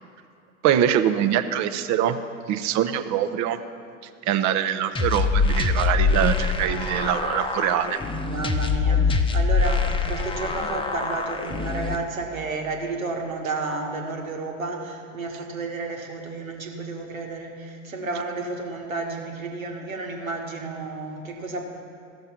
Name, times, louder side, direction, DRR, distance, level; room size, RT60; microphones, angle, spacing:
voice 1, 0.6-2.2 2.5-3.6 4.3-8.0, right 10 dB, 45° right, 9 dB, 0.8 m, -23 dB
sound 1, 4.9-11.9, left 4 dB, 15° left, 0.8 m, -24 dB
voice 2, 8.2-21.6, right 3 dB, 85° right, 1 dB, 1.7 m, -31 dB
14.5 x 6.5 x 5.8 m, 2.5 s
hypercardioid pair, 80°, 40 cm